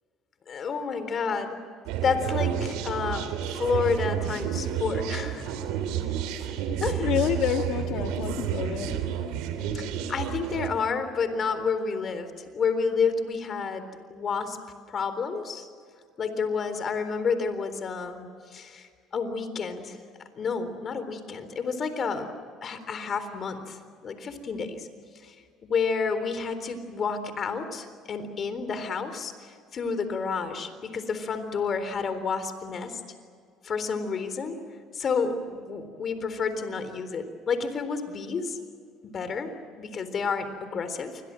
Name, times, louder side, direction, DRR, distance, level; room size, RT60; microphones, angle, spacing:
voice 1, 0.5-1.6 2.0-5.5 6.8-7.1 9.7-12.3 12.5-14.6 14.9-15.7 16.2-20.0 20.4-22.3 22.6-23.8 24.0-24.9 25.2-25.3 25.6-33.0 33.6-34.6 34.9-38.6 39.1-39.5 39.8-41.2, left 5 dB, 45° left, 10 dB, 3.8 m, -30 dB
sound 1, 1.9-10.7, right 9 dB, 85° right, 3.2 m, -30 dB
voice 2, 7.0-9.1, left 9 dB, 70° left, 4 dB, 1.7 m, -28 dB
28.5 x 22.5 x 7.7 m, 2.2 s
supercardioid pair, 95°, 0 cm